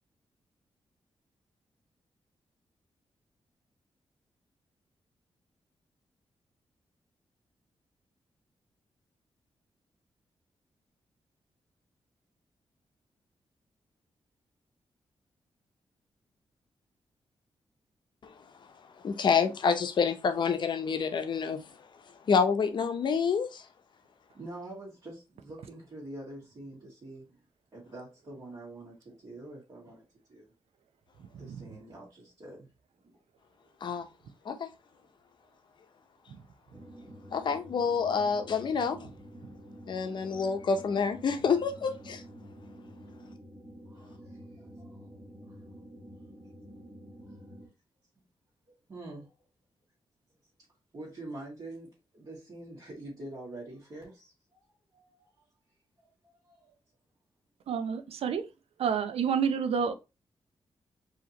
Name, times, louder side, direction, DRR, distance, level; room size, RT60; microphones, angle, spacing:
voice 1, 19.0-21.6 22.3-23.6 33.8-34.1 34.4-34.7 37.3-39.1 39.9-42.2, left 6 dB, 50° left, 0.7 m, -28 dB
voice 2, 24.3-27.3 27.7-30.5 31.4-32.7 33.0-33.2 39.8-40.5 43.9-45.2 45.5-45.6 47.3-47.4 48.9-49.3 50.9-51.9 52.1-54.6 54.9-55.3 56.0-56.7, right 2 dB, 45° right, 2.2 m, -46 dB
sound 1, 36.7-47.7, equal, 20° right, 1.2 m, -49 dB
voice 3, 57.7-58.4 58.8-59.9, right 7 dB, 85° right, 0.6 m, -28 dB
4.9 x 2.9 x 2.9 m
wide cardioid pair, 175°, 10 cm